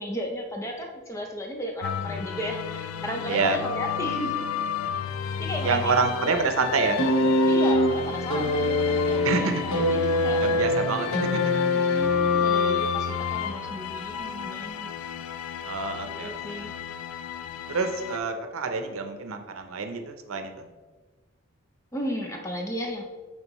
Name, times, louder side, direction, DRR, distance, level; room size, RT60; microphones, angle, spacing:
voice 1, 0.0-4.4 5.4-6.0 7.5-10.4 10.8-11.2 11.7-14.9 16.1-16.7 21.9-23.0, equal, 15° left, 2 dB, 0.6 m, -34 dB
Ferryman (Transition), 1.8-18.2, left 7 dB, 90° left, 0.3 m, -32 dB
voice 2, 3.3-3.6 5.6-7.0 9.2-9.6 10.4-11.4 12.1-12.3 15.6-16.7 17.7-20.7, right 4 dB, 85° right, 6 dB, 0.6 m, -27 dB
sound 1, 7.0-13.2 14.2-14.3, left 1 dB, 70° left, 0.9 m, -24 dB
8.8 x 3.7 x 3.1 m, 1.3 s
head